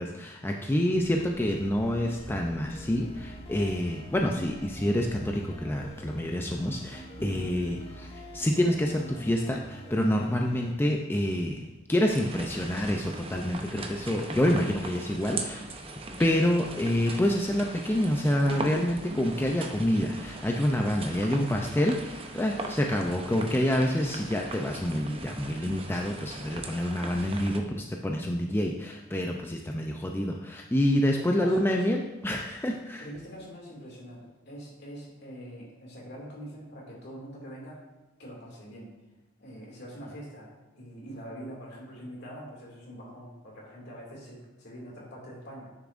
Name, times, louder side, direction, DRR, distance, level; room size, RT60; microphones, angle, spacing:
voice 1, 0.0-15.7 16.2-33.0, left 1 dB, 10° left, 1 dB, 0.4 m, -27 dB
sound 1, 0.8-7.4, right 1 dB, 10° right, 1.3 m, -48 dB
sound 2, 1.4-10.7, equal, 30° left, 0.9 m, -45 dB
voice 2, 7.2-7.5 30.9-31.9 33.0-37.9 38.2-38.9 39.4-45.7, equal, 60° left, -3 dB, 2.3 m, -44 dB
sound 3, 12.0-27.6, right 2 dB, 30° right, 0.7 m, -40 dB
9.6 x 6.9 x 2.5 m, 1.1 s
head